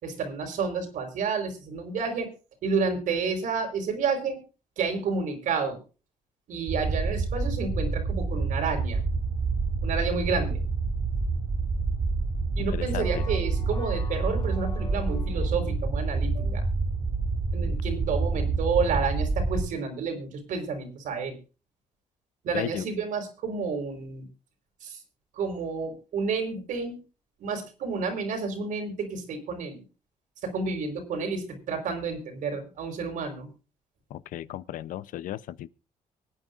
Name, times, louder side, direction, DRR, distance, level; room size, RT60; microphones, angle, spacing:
voice 1, 0.0-2.3 2.6-4.4 4.8-5.8 6.5-9.0 9.8-10.6 12.6-16.6 17.5-21.4 22.4-24.3 24.8-25.0 25.3-27.0 27.4-29.8 30.4-33.5, right 5 dB, 75° right, 4.5 m, -30 dB
sound 1, 6.7-19.7, right 3 dB, 45° right, 3.4 m, -28 dB
voice 2, 12.6-13.3 22.5-22.9 34.1-35.7, left 13 dB, 85° left, 0.7 m, -35 dB
sound 2, 12.9-15.8, left 5 dB, 25° left, 5.1 m, -46 dB
24.5 x 9.4 x 2.5 m
cardioid pair, 115°, 13 cm